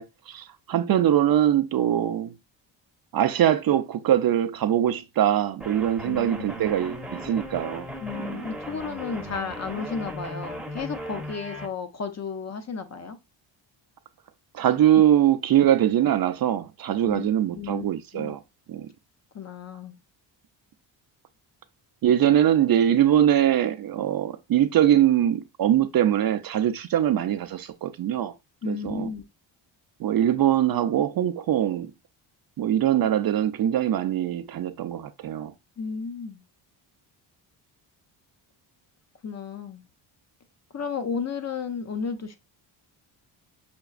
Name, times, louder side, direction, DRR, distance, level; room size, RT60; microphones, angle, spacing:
voice 1, 0.0-2.3 3.1-7.9 14.5-18.4 18.7-18.9 22.0-28.3 28.7-29.1 30.0-31.9 32.6-35.5, right 11 dB, 50° right, 0.5 m, -22 dB
sound 1, 5.6-11.7, equal, ahead, 0.8 m, -37 dB
voice 2, 6.0-6.5 8.0-13.2 17.0-17.3 17.5-17.9 18.1-18.4 19.3-20.0 28.6-29.2 35.8-36.4 39.2-39.8 40.7-42.4, left 5 dB, 35° left, 0.7 m, -33 dB
5.9 x 2.3 x 2.3 m
cardioid pair, 95°, 48 cm